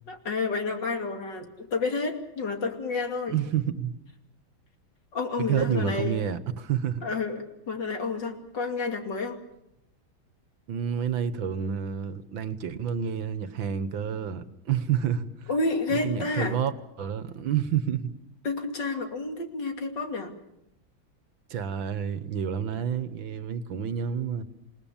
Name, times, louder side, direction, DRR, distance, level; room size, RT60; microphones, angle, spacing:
voice 1, 0.1-3.4 5.1-6.2 7.0-9.4 15.5-16.6 18.4-20.3, left 3 dB, 60° left, 3.3 m, -30 dB
voice 2, 3.3-3.9 5.4-7.0 10.7-15.5 15.9-16.7 17.0-18.1 21.5-24.4, right 8 dB, 75° right, 1.9 m, -29 dB
28.0 x 19.0 x 7.2 m
omnidirectional pair, 2.2 m